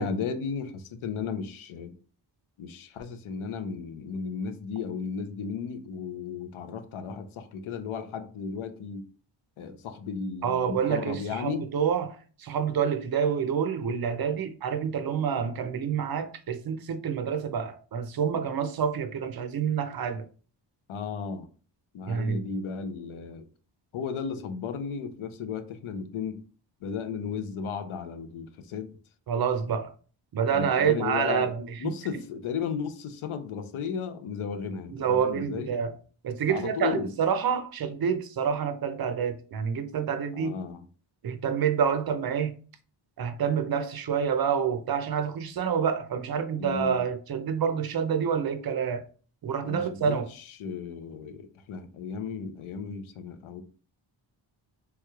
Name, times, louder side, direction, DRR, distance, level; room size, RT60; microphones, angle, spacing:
voice 1, 0.0-1.9 2.6-9.0 9.6-11.7 20.9-21.5 21.9-23.4 23.9-26.4 26.8-29.0 30.5-31.5 31.8-35.7 36.5-37.1 40.3-40.8 46.6-47.0 49.6-53.6, left 6 dB, 90° left, 0.6 m, -34 dB
voice 2, 10.4-20.2 22.1-22.4 29.3-29.9 30.3-31.9 34.9-35.9 36.2-40.6 41.2-42.5 43.2-49.0 49.4-50.3, right 7 dB, 50° right, 0.5 m, -28 dB
3.3 x 3.0 x 2.3 m
wide cardioid pair, 115°, 47 cm